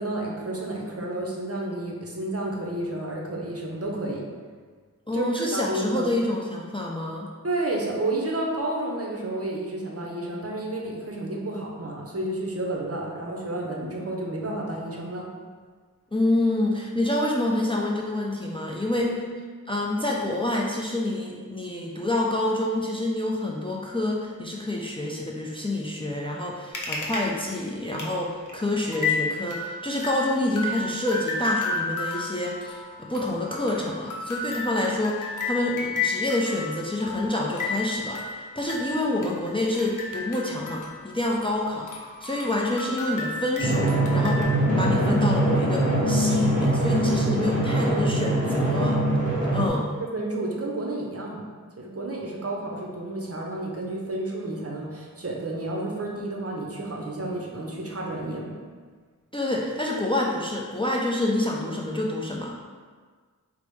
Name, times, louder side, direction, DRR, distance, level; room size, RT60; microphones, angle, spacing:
voice 1, 0.0-4.2 5.1-6.1 7.4-15.3 18.9-19.1 50.0-51.4 51.8-58.5, right 1 dB, 45° right, -2 dB, 0.6 m, -31 dB
voice 2, 5.1-7.3 16.1-19.1 19.7-41.9 42.2-49.0 49.5-49.9 59.3-62.5, left 1 dB, 15° left, -2 dB, 0.4 m, -27 dB
sound 1, 26.7-27.2 27.5-27.6 28.0-28.1 28.5-28.6 28.9-41.6 41.9-44.4, left 4 dB, 65° left, 0.6 m, -32 dB
Drum, 43.6-49.7, right 1 dB, 25° right, 1.0 m, -23 dB
4.6 x 2.0 x 3.1 m, 1.6 s
wide cardioid pair, 50°, 32 cm